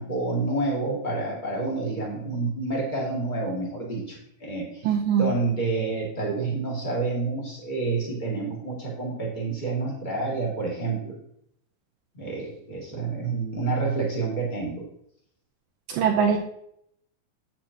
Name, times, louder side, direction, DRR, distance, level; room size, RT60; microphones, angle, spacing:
voice 1, 0.0-4.9 5.2-11.1 12.1-14.8, right 3 dB, 25° left, -3 dB, 1.1 m, -28 dB
voice 2, 4.9-5.3 15.9-16.4, right 7 dB, 85° right, 1 dB, 2.0 m, -22 dB
8.8 x 8.4 x 2.9 m, 0.71 s
omnidirectional pair, 4.7 m